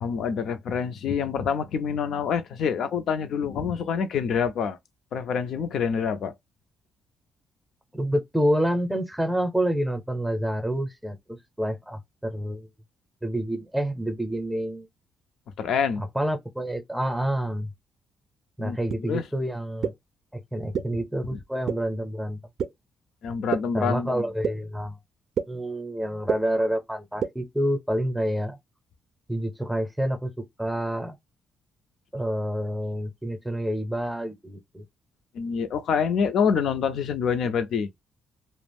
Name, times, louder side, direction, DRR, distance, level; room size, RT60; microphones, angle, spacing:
voice 1, 0.0-4.8 5.1-6.3 15.6-16.0 18.6-19.2 23.2-24.2 35.3-37.9, left 6 dB, 70° left, 0.5 m, -26 dB
voice 2, 7.9-12.7 13.2-14.9 16.0-17.7 18.6-19.9 20.3-22.4 23.7-25.0 25.5-28.6 29.3-31.2 32.1-34.8, equal, 5° right, 0.7 m, -28 dB
sound 1, 18.9-19.0 19.8-19.9 20.7-20.8 21.7-21.8 22.6-22.7 23.5-23.6 24.4-24.5 25.4-25.5 26.3-26.4 27.2-27.3, right 7 dB, 60° right, 0.4 m, -25 dB
2.4 x 2.0 x 3.4 m
cardioid pair, 90°, 0 cm